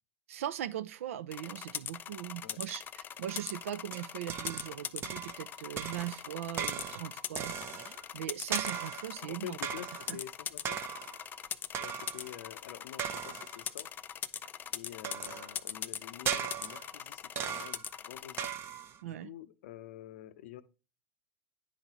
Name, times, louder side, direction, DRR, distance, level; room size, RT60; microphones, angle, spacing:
voice 1, 0.3-7.5 8.1-9.6 10.1-10.2 19.0-19.3, right 12 dB, 75° right, 0.5 m, -39 dB
sound 1, 1.3-18.5, left 9 dB, 25° left, 0.4 m, -42 dB
sound 2, 3.3-4.8 5.0-5.5 5.8-8.0 8.5-9.2 9.6-10.2 10.6-11.2 11.7-12.3 13.0-13.6 15.0-15.6 16.3-17.0 17.4-17.9 18.4-19.0, right 8 dB, 35° right, 0.7 m, -38 dB
voice 2, 9.2-10.8 11.8-13.9 14.7-18.5 19.0-20.6, left 11 dB, 70° left, 0.6 m, -47 dB
10.0 x 3.9 x 3.0 m
hypercardioid pair, 105°, 7 cm